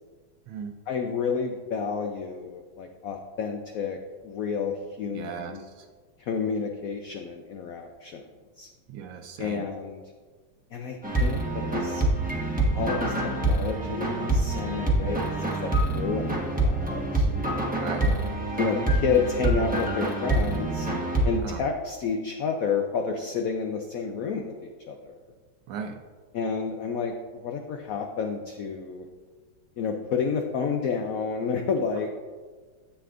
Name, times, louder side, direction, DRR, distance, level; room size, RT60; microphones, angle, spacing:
voice 1, 0.9-4.0 4.2-5.6 6.2-8.2 8.6-8.7 9.4-10.0 10.7-12.1 12.7-17.3 18.0-20.9 21.2-25.1 26.3-27.2 27.4-29.1 29.8-32.1, left 5 dB, 80° left, 4 dB, 0.7 m, -30 dB
voice 2, 5.1-5.9 8.9-9.7 16.1-16.2 17.7-18.1 21.4-21.6 25.7-26.0, right 6 dB, 75° right, 4 dB, 1.3 m, -37 dB
sound 1, 11.0-21.4, right 2 dB, 5° right, 0.7 m, -26 dB
10.0 x 8.3 x 2.5 m, 1.4 s
omnidirectional pair, 2.1 m